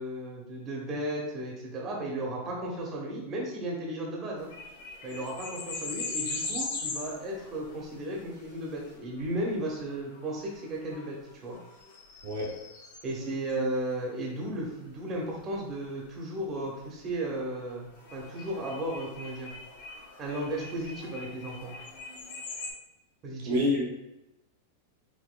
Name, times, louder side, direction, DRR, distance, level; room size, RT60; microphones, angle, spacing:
voice 1, 0.0-4.5 5.0-11.6 13.0-19.5 20.2-21.7 23.2-23.6, right 1 dB, 30° right, -2 dB, 1.0 m, -35 dB
sound 1, 4.4-13.6 17.9-22.7, left 3 dB, 80° left, 1.4 m, -41 dB
voice 2, 12.2-12.6 23.4-23.8, left 1 dB, 65° right, -3 dB, 1.2 m, -27 dB
5.1 x 2.9 x 2.3 m, 0.93 s
hypercardioid pair, 125°, 0 cm